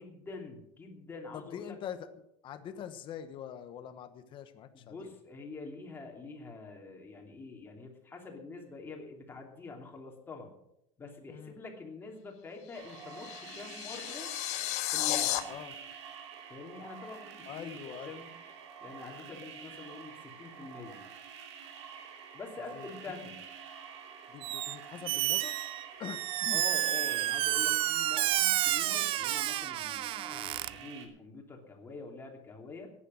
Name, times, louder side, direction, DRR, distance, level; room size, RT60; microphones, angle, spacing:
voice 1, 0.0-1.8 4.7-10.5 11.0-14.3 14.9-15.5 16.5-17.7 18.0-18.3 18.8-21.0 22.3-23.4 26.5-32.9, left 3 dB, 15° left, 1 dB, 2.9 m, -46 dB
voice 2, 1.3-2.1 2.4-5.1 11.3-11.6 15.5-15.8 17.5-18.1 19.0-19.3 22.7-22.9 24.3-25.5 26.0-26.6, left 9 dB, 35° left, 9 dB, 1.2 m, -44 dB
sound 1, 12.7-15.4, left 14 dB, 50° left, 1.3 m, -33 dB
sound 2, 12.7-31.1, right 7 dB, 90° right, 2.8 m, -48 dB
Squeak, 24.4-24.8 25.0-30.7, right 15 dB, 40° right, 0.5 m, -30 dB
15.0 x 10.0 x 6.4 m, 0.80 s
cardioid pair, 155°, 14 cm